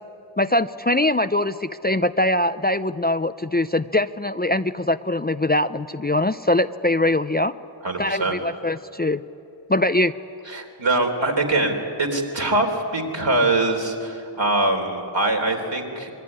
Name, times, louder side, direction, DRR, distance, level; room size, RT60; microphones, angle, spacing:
voice 1, 0.4-7.5 8.0-9.2 9.7-10.1, left 1 dB, 20° left, 11 dB, 0.5 m, -22 dB
voice 2, 7.8-8.3 10.5-16.1, right 2 dB, 65° right, 2 dB, 3.9 m, -23 dB
26.5 x 22.0 x 9.8 m, 2.7 s
wide cardioid pair, 55°, 47 cm